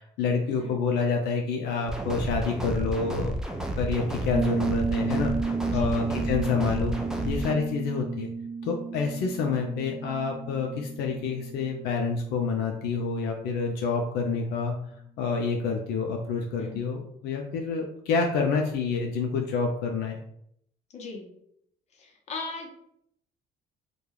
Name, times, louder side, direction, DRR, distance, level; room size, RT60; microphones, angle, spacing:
voice 1, 0.0-3.3 3.8-6.9 7.3-8.3 8.7-14.8 15.2-20.2, left 5 dB, 80° left, 2 dB, 0.4 m, -28 dB
sound 1, 1.9-7.5, right 1 dB, 5° right, 0.3 m, -32 dB
Piano, 4.3-12.8, right 5 dB, 50° right, 1.2 m, -33 dB
voice 2, 20.9-21.3 21.9-22.7, left 3 dB, 40° left, 1 dB, 0.7 m, -38 dB
2.2 x 2.2 x 3.1 m, 0.72 s
cardioid pair, 110°, 17 cm